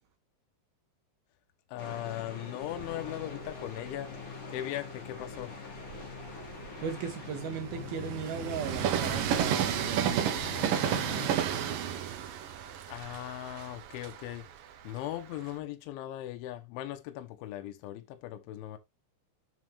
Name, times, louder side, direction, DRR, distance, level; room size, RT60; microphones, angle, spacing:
voice 1, 1.7-4.1 4.5-5.5 12.9-14.4 14.8-18.8, left 13 dB, 75° left, 3.3 m, -39 dB
sound 1, 1.8-11.3, left 4 dB, 35° left, 2.8 m, -43 dB
Train, 2.7-4.4 5.0-15.6, right 9 dB, 85° right, 1.9 m, -33 dB
voice 2, 6.8-10.3, right 7 dB, 65° right, 2.5 m, -36 dB
7.5 x 7.4 x 3.5 m
omnidirectional pair, 5.8 m